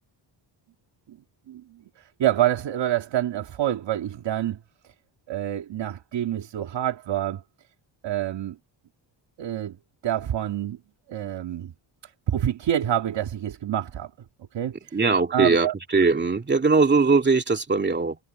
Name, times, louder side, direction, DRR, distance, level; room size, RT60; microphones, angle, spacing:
voice 1, 1.5-4.6 5.3-7.4 8.0-8.6 9.4-9.8 10.0-10.8 11.1-11.7 12.0-14.1 14.5-15.0 15.3-15.7, right 11 dB, 65° right, 2.1 m, -27 dB
voice 2, 14.9-18.2, right 4 dB, 20° right, 2.7 m, -20 dB
wide cardioid pair, 165°, 47 cm